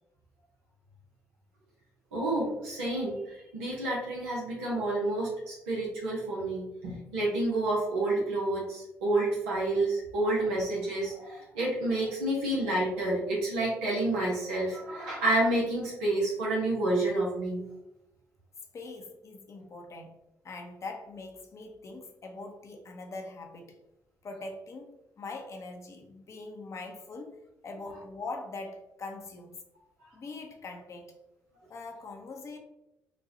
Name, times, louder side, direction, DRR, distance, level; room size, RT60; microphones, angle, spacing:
voice 1, 2.1-17.6, right 2 dB, 90° right, -5 dB, 0.8 m, -29 dB
voice 2, 18.7-23.8 24.2-27.4 27.6-29.6 30.1-31.1 31.7-32.6, left 3 dB, 50° left, 3 dB, 0.7 m, -42 dB
4.1 x 2.3 x 2.6 m, 0.90 s
hypercardioid pair, 45°, 7 cm